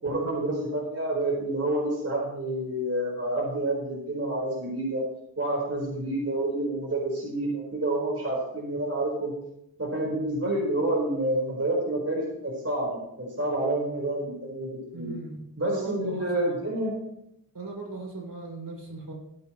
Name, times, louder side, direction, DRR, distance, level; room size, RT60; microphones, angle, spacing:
voice 1, 0.0-5.0 5.4-9.3 9.8-14.7 15.0-15.1 15.6-16.9, right 1 dB, 40° right, -3 dB, 4.6 m, -28 dB
voice 2, 14.9-16.6 17.5-19.1, right 3 dB, 65° right, -2 dB, 6.2 m, -38 dB
18.5 x 10.0 x 3.2 m, 0.76 s
cardioid pair, 50°, 37 cm